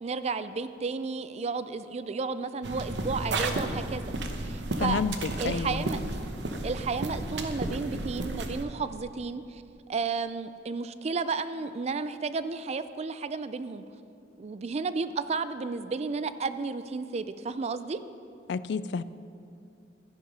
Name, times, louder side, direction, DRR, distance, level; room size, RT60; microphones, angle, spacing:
voice 1, 0.0-4.1 4.4-5.0 5.4-6.0 6.6-9.6 9.9-13.8 14.4-18.0, right 4 dB, 35° right, 13 dB, 0.4 m, -32 dB
sound 1, 2.6-8.6, right 2 dB, 75° right, 0.9 m, -33 dB
voice 2, 4.8-5.1 5.4-5.8 18.5-19.0, left 5 dB, 70° left, 16 dB, 0.4 m, -29 dB
12.5 x 10.5 x 5.4 m, 2.5 s
head